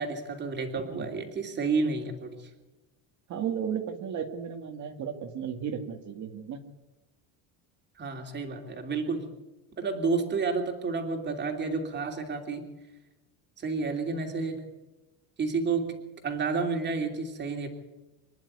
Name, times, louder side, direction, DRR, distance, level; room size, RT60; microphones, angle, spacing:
voice 1, 0.0-2.4 8.0-9.3 9.8-12.7 13.6-14.6 15.4-16.0 16.2-17.7, right 4 dB, 25° right, 4 dB, 2.8 m, -30 dB
voice 2, 3.3-6.6, right 8 dB, 45° right, 5 dB, 2.0 m, -34 dB
25.5 x 10.5 x 9.8 m, 1.1 s
cardioid pair, 155°, 41 cm